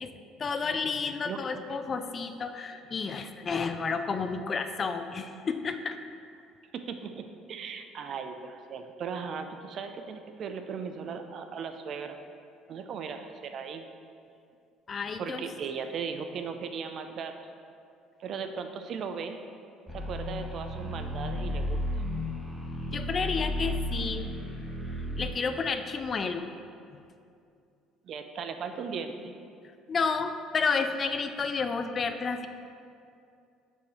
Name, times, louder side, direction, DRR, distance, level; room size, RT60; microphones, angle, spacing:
voice 1, 0.4-6.0 14.9-15.4 22.9-24.3 25.2-26.5 29.9-32.5, left 5 dB, 35° left, 8 dB, 0.4 m, -31 dB
voice 2, 6.7-12.2 12.7-13.8 15.2-17.3 18.2-19.4 19.9-21.8 28.0-29.3, right 6 dB, 55° right, 7 dB, 0.5 m, -37 dB
sound 1, 19.9-25.3, left 1 dB, 5° right, 1.0 m, -33 dB
5.4 x 4.7 x 4.1 m, 2.5 s
supercardioid pair, 90°, 0 cm